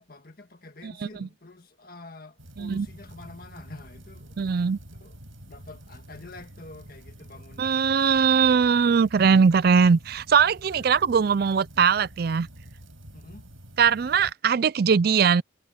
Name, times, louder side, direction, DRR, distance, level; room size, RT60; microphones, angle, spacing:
voice 1, 0.0-5.2 5.5-8.0 10.7-11.0 13.1-13.4, left 2 dB, 45° left, 1.9 m, -47 dB
voice 2, 0.8-1.3 2.6-2.9 4.4-4.8 7.6-12.5 13.8-15.4, right 6 dB, 50° right, 0.4 m, -21 dB
sound 1, 2.4-14.3, right 1 dB, 85° right, 6.9 m, -47 dB
head